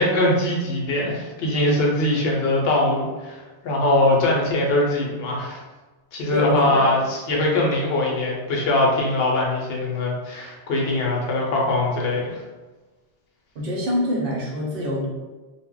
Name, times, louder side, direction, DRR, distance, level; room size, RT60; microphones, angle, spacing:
voice 1, 0.0-5.6 6.1-12.4, left 1 dB, 70° left, -2 dB, 0.8 m, -22 dB
voice 2, 6.3-6.8 13.5-15.1, left 1 dB, 60° right, -3 dB, 0.8 m, -25 dB
2.1 x 2.1 x 3.7 m, 1.2 s
omnidirectional pair, 1.1 m